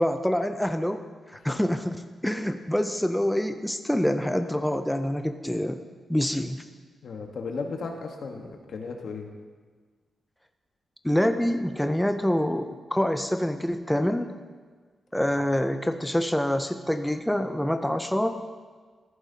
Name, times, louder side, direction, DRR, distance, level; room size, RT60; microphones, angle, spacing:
voice 1, 0.0-1.9 2.2-5.8 6.1-6.6 11.0-14.3 15.1-18.4, equal, 5° left, 7 dB, 0.4 m, -26 dB
voice 2, 7.0-9.3 15.4-15.5, left 4 dB, 75° left, 3 dB, 1.2 m, -35 dB
14.5 x 11.0 x 2.8 m, 1.5 s
wide cardioid pair, 115°, 0 cm